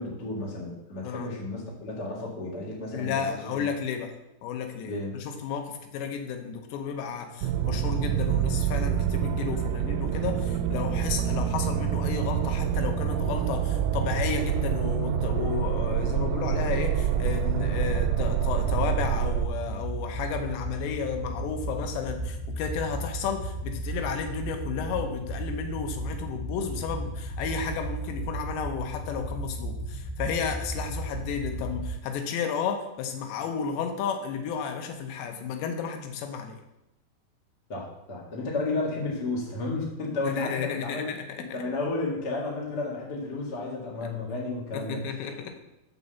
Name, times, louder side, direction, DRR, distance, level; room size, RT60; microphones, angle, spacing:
voice 1, 0.0-3.7 4.8-5.2 37.7-41.1 41.4-45.3, left 2 dB, 40° left, -3 dB, 1.4 m, -32 dB
voice 2, 2.9-4.1 4.4-36.6 40.2-41.6 44.7-45.6, left 6 dB, 85° left, 5 dB, 3.2 m, -32 dB
sound 1, 7.4-19.5, right 9 dB, 90° right, 2.8 m, -27 dB
sound 2, 16.9-32.0, right 1 dB, 60° left, 3.0 m, -35 dB
6.7 x 5.6 x 6.9 m, 0.90 s
omnidirectional pair, 4.9 m